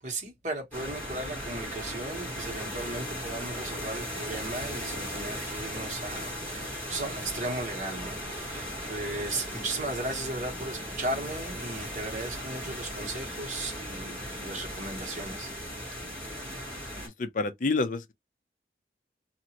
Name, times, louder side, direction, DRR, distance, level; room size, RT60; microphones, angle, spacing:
voice 1, 0.0-15.5, right 2 dB, 45° right, 1.2 m, -36 dB
sound 1, 0.7-17.1, equal, 10° left, 1.7 m, -37 dB
voice 2, 17.0-18.1, left 3 dB, 45° left, 0.5 m, -29 dB
2.9 x 2.5 x 2.9 m
head